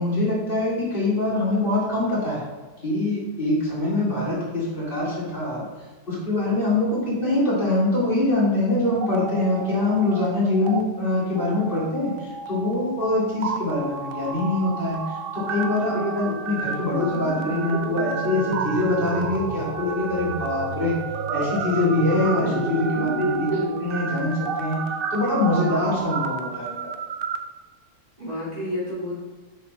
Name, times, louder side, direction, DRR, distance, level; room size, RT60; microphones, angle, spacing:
voice 1, 0.0-2.4 2.8-5.6 6.1-21.0 21.3-23.5 23.8-24.8 25.1-26.8, left 2 dB, 35° left, -7 dB, 2.5 m, -24 dB
sound 1, 8.9-10.3 10.5-10.8 11.3-27.4, right 5 dB, 65° right, 0.5 m, -31 dB
voice 2, 15.9-16.4 23.2-23.8 28.2-29.2, right 1 dB, 25° right, -7 dB, 2.4 m, -28 dB
6.7 x 6.1 x 4.1 m, 1.3 s
omnidirectional pair, 1.6 m